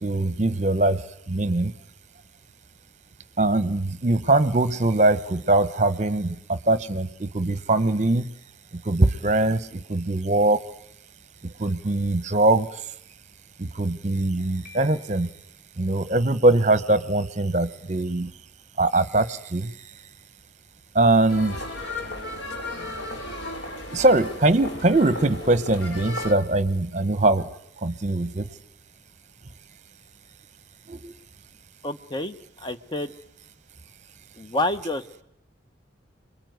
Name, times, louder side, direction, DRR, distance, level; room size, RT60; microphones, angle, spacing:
voice 1, 0.0-1.0 1.3-1.7 3.4-8.3 8.7-10.6 11.4-12.7 13.6-15.3 15.8-18.3 18.8-19.7 20.9-21.6 23.9-27.5 27.8-28.5 30.9-31.1, right 2 dB, 40° right, 16 dB, 1.0 m, -22 dB
Piano, 14.6-15.6, left 3 dB, 45° left, 2.9 m, -50 dB
sound 1, 21.3-26.3, left 1 dB, 60° left, 3.0 m, -34 dB
voice 2, 31.8-33.1 34.4-35.0, left 1 dB, 25° left, 10 dB, 1.0 m, -28 dB
27.0 x 22.5 x 9.4 m, 0.75 s
head